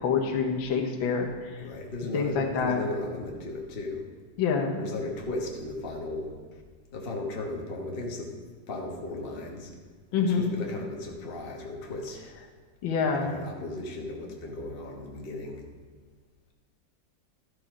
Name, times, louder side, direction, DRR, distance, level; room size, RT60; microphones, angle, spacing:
voice 1, 0.0-1.7 2.1-2.8 4.4-4.8 10.1-10.4 12.8-13.4, left 5 dB, 90° left, 2 dB, 1.7 m, -27 dB
voice 2, 1.6-4.0 4.8-6.3 6.9-8.3 8.7-9.7 10.2-12.2 13.0-15.6, left 2 dB, 35° left, 0 dB, 1.2 m, -36 dB
12.0 x 4.8 x 5.0 m, 1.4 s
omnidirectional pair, 2.1 m